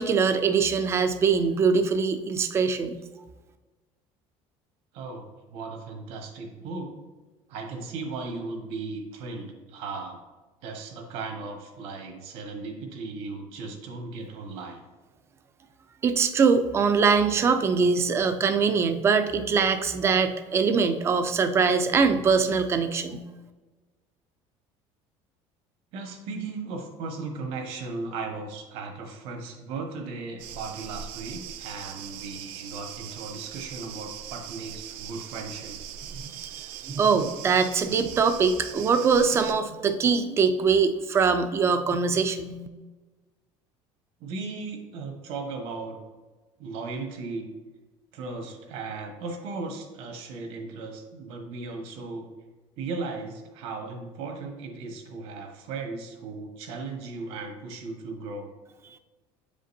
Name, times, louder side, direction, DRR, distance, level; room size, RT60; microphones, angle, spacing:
voice 1, 0.0-3.0 16.0-23.2 36.1-36.5 36.9-42.7, right 5 dB, 25° right, 8 dB, 0.4 m, -23 dB
voice 2, 4.9-6.9 7.5-10.2 10.6-14.8 25.9-35.8 44.2-46.0 46.6-47.5 48.1-52.3 52.8-58.5, right 3 dB, 65° right, 3 dB, 1.3 m, -36 dB
sound 1, 30.4-39.5, right 10 dB, 85° right, 0.5 m, -41 dB
7.9 x 5.1 x 2.7 m, 1.3 s
cardioid pair, 155°, 11 cm